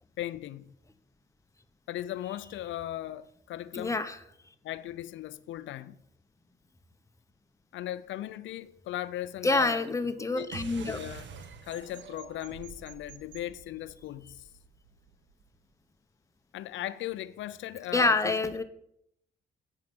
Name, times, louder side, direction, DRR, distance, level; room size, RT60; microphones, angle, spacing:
voice 1, 0.2-0.7 1.9-4.0 4.6-6.0 7.7-10.0 10.3-10.5 10.9-11.3 11.6-14.4 16.5-18.4, left 13 dB, 75° left, 0.6 m, -38 dB
voice 2, 3.7-4.2 9.4-11.0 17.9-18.6, left 3 dB, 15° left, 1.0 m, -27 dB
sound 1, 10.5-15.4, right 6 dB, 65° right, 1.1 m, -47 dB
8.8 x 5.8 x 7.7 m
cardioid pair, 90°, 20 cm